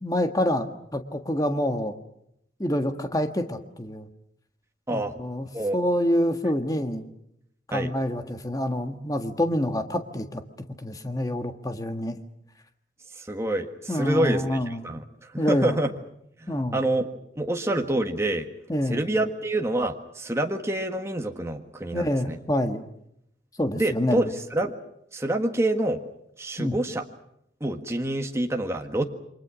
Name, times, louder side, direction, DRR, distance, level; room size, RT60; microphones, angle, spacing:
voice 1, 0.0-2.0 2.6-4.1 4.9-7.1 7.7-10.4 10.8-12.2 13.9-14.8 15.4-15.8 16.5-16.8 18.7-19.0 21.9-22.8 23.6-24.3 26.6-26.8, left 1 dB, 20° left, 7 dB, 1.6 m, -27 dB
voice 2, 13.3-15.0 15.5-15.9 16.7-17.1 17.4-18.5 18.9-22.4 23.7-24.7 25.1-26.0 26.4-27.0 27.6-29.0, right 1 dB, 15° right, 3 dB, 1.6 m, -27 dB
29.0 x 24.5 x 6.3 m, 0.77 s
head